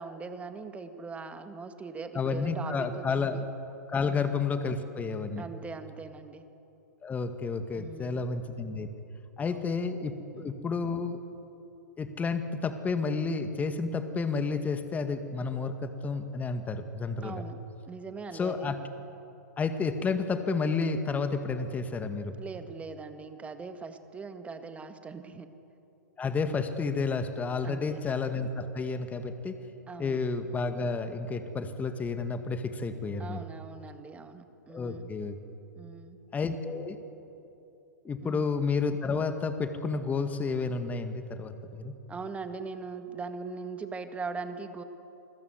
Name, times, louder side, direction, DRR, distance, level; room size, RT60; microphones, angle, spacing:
voice 1, 0.0-3.4 4.0-4.3 5.3-6.4 7.7-8.3 9.4-9.8 10.3-10.5 17.2-17.6 17.9-18.7 22.4-25.5 27.6-28.0 29.9-30.2 33.2-35.1 35.8-36.2 38.2-38.5 42.1-44.8, right 4 dB, 15° right, 8 dB, 1.9 m, -41 dB
voice 2, 2.1-3.4 3.9-5.4 7.0-8.9 9.4-11.2 12.0-17.3 18.3-18.8 19.6-22.3 26.2-29.6 30.0-33.4 34.7-35.4 36.3-37.0 38.0-42.0, left 4 dB, 15° left, 8 dB, 2.0 m, -31 dB
28.5 x 21.0 x 8.2 m, 2.9 s
hypercardioid pair, 110°, 9 cm